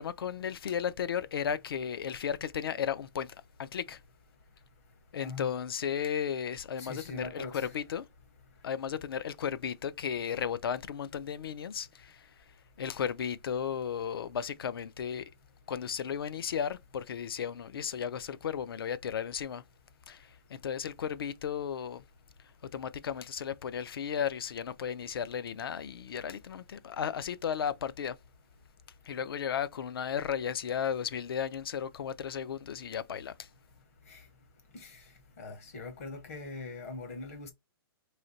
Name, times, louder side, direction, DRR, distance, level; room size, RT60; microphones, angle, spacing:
voice 1, 0.0-4.0 5.1-8.0 8.6-12.3 12.8-15.3 15.7-19.6 20.1-22.0 22.7-28.2 29.0-33.5, left 8 dB, 70° left, 0.5 m, -34 dB
voice 2, 6.8-7.7 34.1-34.2 34.7-35.0 35.4-37.5, left 3 dB, 35° left, 0.8 m, -42 dB
3.2 x 2.8 x 3.9 m
hypercardioid pair, 180°, 13 cm